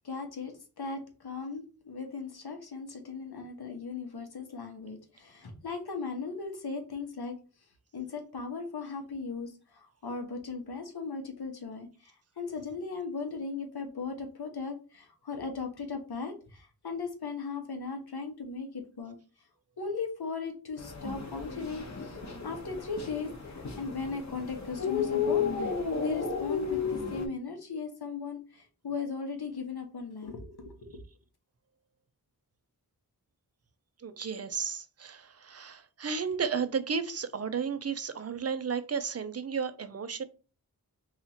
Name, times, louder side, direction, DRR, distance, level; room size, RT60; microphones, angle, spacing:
voice 1, 0.0-7.3 7.9-19.2 19.8-31.0, left 4 dB, 80° left, 5 dB, 0.8 m, -38 dB
sound 1, 20.8-27.3, left 6 dB, 45° left, 0.7 m, -33 dB
voice 2, 34.0-40.2, right 6 dB, 40° right, 12 dB, 0.4 m, -33 dB
2.9 x 2.4 x 4.1 m, 0.35 s
wide cardioid pair, 50°, 38 cm